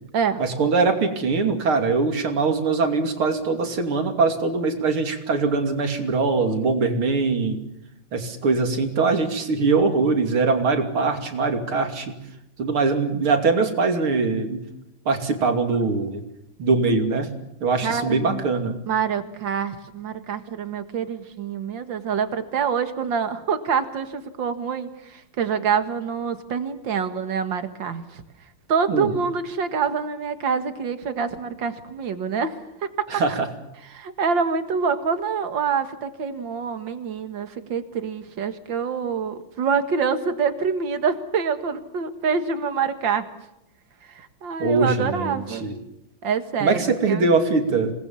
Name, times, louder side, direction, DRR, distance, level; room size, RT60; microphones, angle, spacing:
voice 1, 0.4-7.6 8.1-12.2 12.6-14.6 15.1-16.2 16.6-17.3 17.6-18.8 28.9-29.1 33.1-33.5 44.6-45.7 46.6-47.9, right 4 dB, 80° right, 6 dB, 3.6 m, -22 dB
voice 2, 17.8-18.4 18.9-28.2 28.7-32.5 32.8-33.1 33.9-43.3 44.1-45.6 46.2-46.8 47.1-47.3, right 6 dB, 60° right, 9 dB, 2.5 m, -26 dB
27.5 x 20.0 x 7.2 m, 0.86 s
omnidirectional pair, 2.3 m